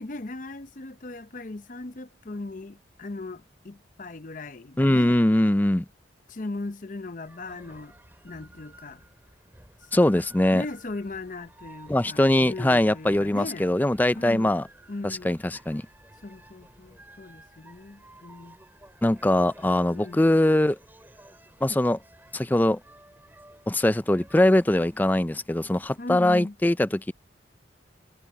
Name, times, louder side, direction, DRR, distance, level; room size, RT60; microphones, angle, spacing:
voice 1, 0.0-5.2 6.3-7.9 8.2-9.0 9.8-9.9 10.5-13.7 14.2-14.6 14.9-15.4 16.2-18.6 19.9-20.4 26.0-26.5, left 2 dB, 40° left, 0.7 m, -38 dB
voice 2, 4.8-5.8 9.9-10.6 11.9-14.6 15.0-15.8 19.0-20.8 21.6-22.0 22.3-22.8 23.7-27.1, left 1 dB, 10° left, 0.4 m, -22 dB
sound 1, 7.2-26.0, right 1 dB, 10° right, 4.7 m, -53 dB
sound 2, 7.5-15.0, equal, 65° right, 5.6 m, -64 dB
head